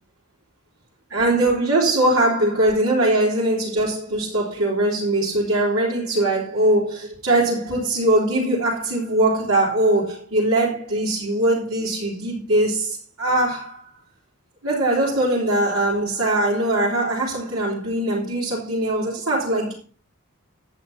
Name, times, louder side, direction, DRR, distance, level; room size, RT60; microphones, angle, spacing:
voice 1, 1.1-13.9 14.6-19.7, right 1 dB, 70° right, 3.8 m, -21 dB
11.0 x 7.9 x 4.3 m
head